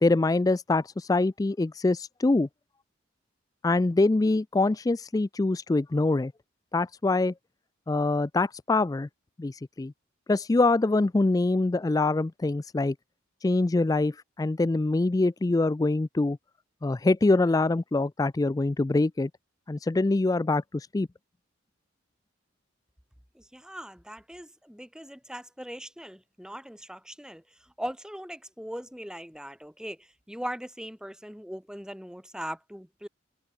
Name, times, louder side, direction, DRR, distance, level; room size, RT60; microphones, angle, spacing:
voice 1, 0.0-2.5 3.6-6.3 6.7-7.3 7.9-9.1 9.4-9.9 10.3-13.0 13.4-16.4 16.8-19.3 19.7-21.1, left 2 dB, 20° left, 0.3 m, -24 dB
voice 2, 23.3-33.1, equal, 5° right, 5.0 m, -40 dB
head